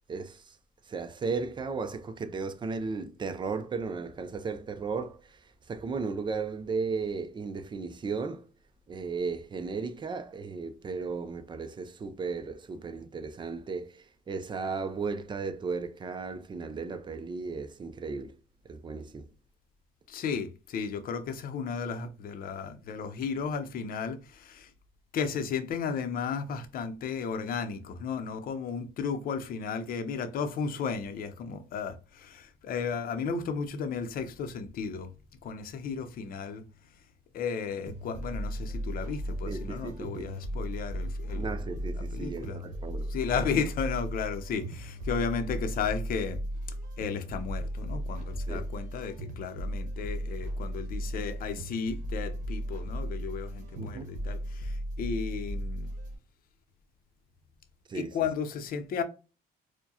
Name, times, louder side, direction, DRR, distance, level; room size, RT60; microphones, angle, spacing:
voice 1, 0.1-0.6 0.9-5.4 5.7-8.5 8.9-18.4 18.7-19.3 39.5-40.3 41.3-43.1 43.4-43.5 48.5-48.7 53.8-54.1 57.9-58.2, right 4 dB, 25° right, 0.5 m, -35 dB
voice 2, 20.1-24.7 25.1-35.1 35.4-36.6 37.3-41.6 42.0-42.6 43.1-46.4 47.0-55.9 57.9-59.0, left 6 dB, 60° left, 0.7 m, -34 dB
sound 1, 37.9-56.2, equal, 50° right, 1.1 m, -36 dB
4.5 x 2.2 x 2.8 m
cardioid pair, 110°, 17 cm